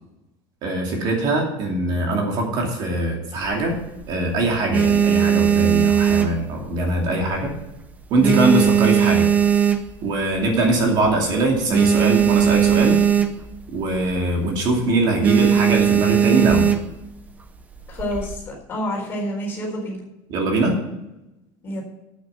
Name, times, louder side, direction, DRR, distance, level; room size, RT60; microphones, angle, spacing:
voice 1, 0.6-3.8 4.1-7.6 8.1-9.3 10.0-13.0 13.7-16.7 20.3-20.8, right 2 dB, 45° right, 1 dB, 2.7 m, -22 dB
sound 1, 3.4-4.1 4.5-7.0 7.3-7.7 8.0-10.2 10.7-10.8 11.0-11.1 11.4-13.6 13.9-14.2 14.5-14.8 15.2-17.0 17.8-18.3, right 8 dB, 15° right, 0.7 m, -18 dB
voice 2, 17.9-20.0 21.6-21.8, equal, 25° left, -2 dB, 4.3 m, -28 dB
9.3 x 9.0 x 8.1 m, 0.94 s
cardioid pair, 170°, 10 cm